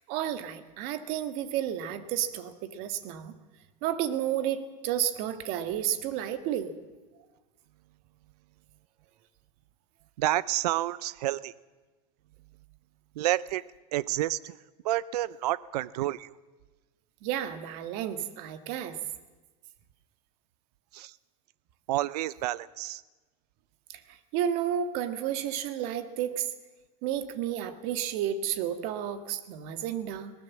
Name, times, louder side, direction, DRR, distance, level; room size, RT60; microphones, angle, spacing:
voice 1, 0.1-3.3 3.8-6.7 17.2-19.0 23.9-26.5 27.0-30.3, right 10 dB, 55° right, 9 dB, 1.8 m, -31 dB
voice 2, 10.2-11.5 13.2-13.6 13.9-14.6 14.8-16.3 20.9-21.1 21.9-23.0, right 15 dB, 90° right, 19 dB, 0.6 m, -29 dB
21.0 x 19.0 x 7.4 m, 1.2 s
supercardioid pair, 150°, 20 cm